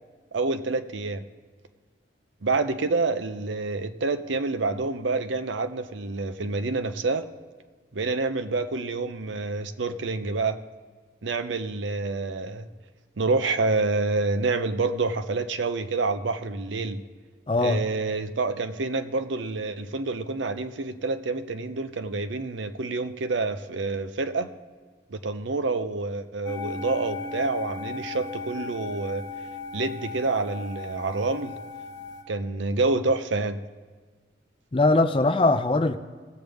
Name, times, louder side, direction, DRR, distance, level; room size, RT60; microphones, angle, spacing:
voice 1, 0.3-1.2 2.4-7.3 7.9-10.6 11.2-12.7 13.2-17.0 17.6-24.5 25.1-29.2 29.7-31.6 32.3-33.6, right 3 dB, 85° right, 9 dB, 0.7 m, -27 dB
voice 2, 17.5-17.8 34.7-36.0, left 2 dB, 30° left, 9 dB, 0.5 m, -21 dB
sound 1, 26.4-32.2, left 4 dB, 80° left, 1.2 m, -37 dB
19.0 x 7.7 x 3.5 m, 1.5 s
head